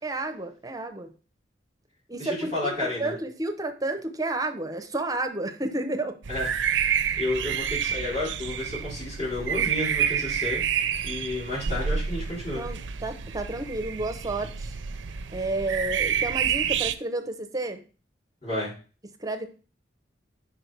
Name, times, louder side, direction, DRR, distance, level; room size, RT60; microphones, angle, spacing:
voice 1, 0.0-1.1 2.1-6.2 12.5-14.7 15.3-17.8 19.2-19.5, right 2 dB, 20° right, 6 dB, 0.6 m, -31 dB
voice 2, 2.2-3.1 6.3-6.5 7.2-10.6 11.0-12.6 18.4-18.7, left 2 dB, 35° left, -9 dB, 3.6 m, -31 dB
sound 1, 6.2-16.9, right 8 dB, 75° right, 0.4 m, -29 dB
5.2 x 4.9 x 4.5 m, 0.37 s
head